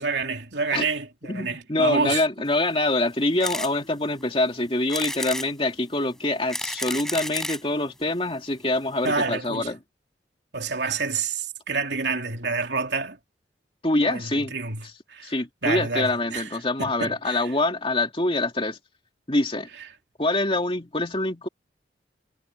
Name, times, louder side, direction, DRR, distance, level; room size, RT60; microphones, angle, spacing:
voice 1, 0.0-2.2 9.0-9.7 10.5-13.2 14.0-15.3 15.6-16.5 16.8-17.5, right 4 dB, 85° right, 3.2 m, -28 dB
voice 2, 1.3-9.8 13.8-14.6 15.2-18.8 19.3-19.7 20.2-21.5, left 2 dB, 30° left, 2.4 m, -25 dB
sound 1, 3.4-3.7 4.2-4.3 4.9-5.5 6.2-7.7 8.5-8.6 8.8-8.9 9.1-9.2, left 1 dB, 5° left, 6.2 m, -31 dB
head